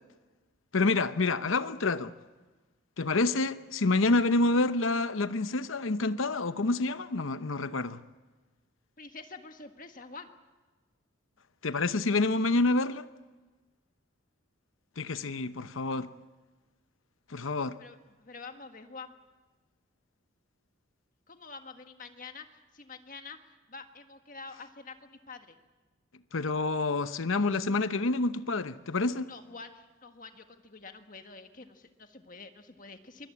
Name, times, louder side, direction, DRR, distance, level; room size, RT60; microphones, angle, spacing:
voice 1, 0.7-2.1 3.0-8.0 11.6-13.1 15.0-16.1 17.3-17.8 26.3-29.3, left 3 dB, 75° left, 0.9 m, -28 dB
voice 2, 9.0-10.3 17.8-19.1 21.3-25.6 29.3-33.3, left 4 dB, 40° left, 1.7 m, -47 dB
24.0 x 20.5 x 8.6 m
head